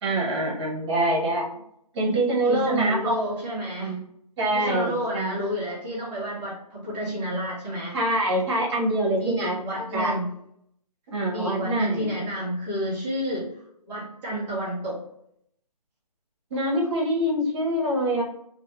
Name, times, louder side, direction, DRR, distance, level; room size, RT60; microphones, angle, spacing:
voice 1, 0.0-1.5 1.9-3.2 3.8-4.0 4.4-5.3 7.9-10.1 11.1-12.1 16.5-18.2, right 1 dB, 45° right, -2 dB, 1.0 m, -25 dB
voice 2, 2.4-4.0 4.5-8.0 9.2-10.3 11.3-15.0, equal, 10° right, -10 dB, 0.4 m, -30 dB
2.6 x 2.1 x 2.9 m, 0.73 s
hypercardioid pair, 150°, 21 cm